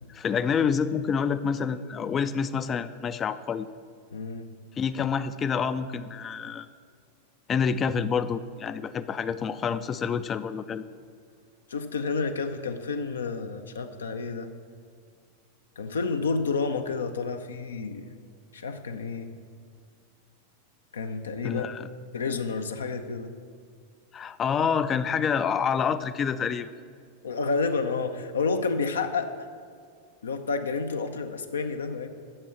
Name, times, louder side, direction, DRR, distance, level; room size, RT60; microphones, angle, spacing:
voice 1, 0.1-3.7 4.8-6.7 7.5-10.8 21.4-21.9 24.1-26.7, left 6 dB, 25° left, 13 dB, 0.4 m, -27 dB
voice 2, 4.1-4.5 11.7-14.5 15.8-18.1 18.5-19.3 20.9-21.7 22.1-23.3 27.2-29.3 30.2-32.1, left 4 dB, 70° left, 7 dB, 0.6 m, -30 dB
8.7 x 7.0 x 7.1 m, 2.1 s
figure-of-eight pair, 90°, 0 cm